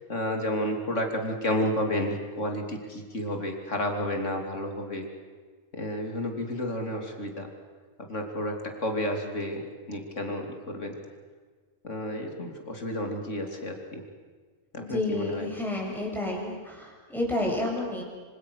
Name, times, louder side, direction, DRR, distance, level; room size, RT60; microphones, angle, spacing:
voice 1, 0.1-5.1 5.7-7.5 8.1-9.6 9.9-10.9 11.8-14.0 14.9-15.5, left 1 dB, 65° left, 3 dB, 3.4 m, -31 dB
voice 2, 14.8-18.0, left 1 dB, ahead, -2 dB, 6.8 m, -30 dB
26.0 x 25.5 x 6.6 m, 1.5 s
omnidirectional pair, 1.4 m